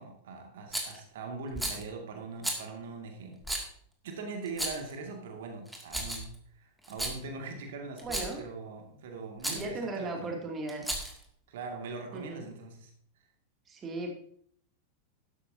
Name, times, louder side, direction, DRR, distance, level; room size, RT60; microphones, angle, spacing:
voice 1, 0.0-3.4 4.0-10.4 11.5-12.9, right 4 dB, 55° right, 3 dB, 2.3 m, -41 dB
Rattle, 0.7-1.0 1.5-1.8 2.4-2.6 3.4-3.7 4.5-4.9 5.7-6.4 6.8-7.2 8.0-8.4 9.4-9.6 10.7-11.2, right 1 dB, 5° right, 2.5 m, -34 dB
voice 2, 8.0-8.4 9.5-10.9 12.1-12.5 13.7-14.1, right 2 dB, 25° right, 1 dB, 2.6 m, -37 dB
12.5 x 12.0 x 2.8 m, 0.62 s
figure-of-eight pair, 90°, 0 cm